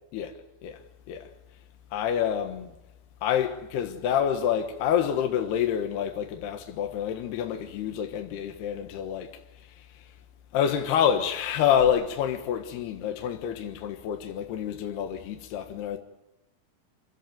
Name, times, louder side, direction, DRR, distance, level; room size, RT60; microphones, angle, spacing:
voice 1, 0.1-0.8 1.1-1.3 1.9-2.7 3.2-9.3 9.8-9.9 10.5-16.0, left 9 dB, 75° left, 3.3 m, -27 dB
26.0 x 16.5 x 9.3 m
omnidirectional pair, 4.8 m